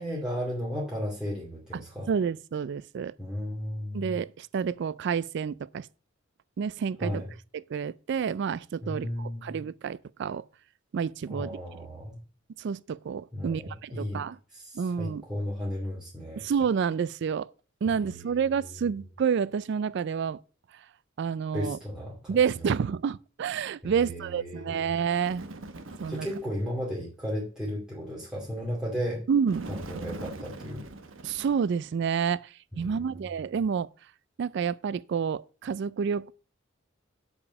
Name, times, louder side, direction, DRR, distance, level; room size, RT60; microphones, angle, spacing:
voice 1, 0.0-2.1 3.2-4.2 7.0-7.3 8.8-9.6 11.3-12.2 13.3-14.2 14.5-16.4 17.9-18.4 21.5-22.7 23.8-24.8 26.1-29.2 29.7-30.8 32.7-33.2, equal, 5° right, 2.5 m, -35 dB
voice 2, 1.7-3.1 3.9-5.9 6.6-7.2 7.5-10.4 10.9-11.6 12.6-14.4 14.7-15.2 16.4-17.5 17.8-20.4 20.7-20.8 21.2-21.8 22.3-25.4 26.0-26.3 29.3-29.7 31.2-33.9 34.4-36.3, right 6 dB, 60° right, 0.3 m, -29 dB
Bird, 25.2-26.6 29.5-32.0, right 2 dB, 80° right, 1.1 m, -42 dB
8.4 x 5.1 x 6.9 m
head